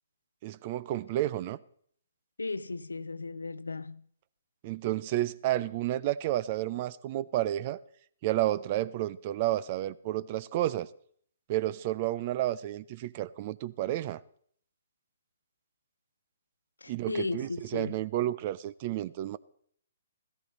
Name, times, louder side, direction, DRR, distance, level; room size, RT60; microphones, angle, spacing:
voice 1, 0.4-1.6 4.6-7.8 8.2-10.9 11.5-14.2 16.9-19.4, right 14 dB, 40° right, 0.5 m, -31 dB
voice 2, 2.4-4.0 16.8-18.0, left 3 dB, 90° left, 0.5 m, -35 dB
15.0 x 14.0 x 4.0 m
hypercardioid pair, 135°, 0 cm